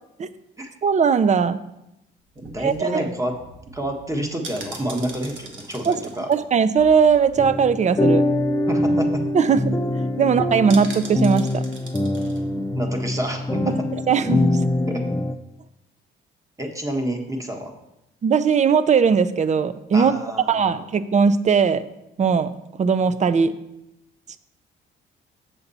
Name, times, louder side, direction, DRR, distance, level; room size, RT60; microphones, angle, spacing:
voice 1, 0.8-1.6 2.6-3.0 5.9-6.0 6.3-8.3 9.3-9.8 10.2-11.6 14.1-14.5 18.2-20.1 20.5-21.9 22.2-22.5 22.8-23.6, right 6 dB, 35° right, 14 dB, 0.5 m, -19 dB
sound 1, 2.2-7.6 7.9-8.0 8.3-8.5 8.9-9.0 9.3-9.6 10.7-12.4 12.8-12.9, right 3 dB, 70° right, 1.4 m, -41 dB
voice 2, 2.3-3.4 3.7-6.3 8.7-9.2 12.6-13.8 14.9-15.1 16.6-17.7 19.9-20.9, right 1 dB, 15° right, 3 dB, 1.3 m, -28 dB
sound 2, 7.4-15.3, left 1 dB, 10° left, 0.5 m, -23 dB
7.1 x 6.7 x 4.1 m, 0.87 s
cardioid pair, 90°, 20 cm